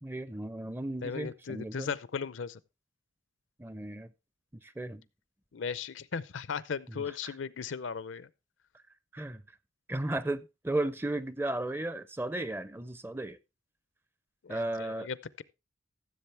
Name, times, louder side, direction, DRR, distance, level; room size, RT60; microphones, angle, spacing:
voice 1, 0.0-1.9 3.6-4.1 4.6-5.0 6.9-7.4 9.1-9.4 9.9-13.4 14.5-15.1, right 1 dB, 10° right, 0.4 m, -35 dB
voice 2, 1.0-2.6 5.5-8.3 14.4-15.4, left 6 dB, 75° left, 0.6 m, -37 dB
15.0 x 7.5 x 3.3 m
head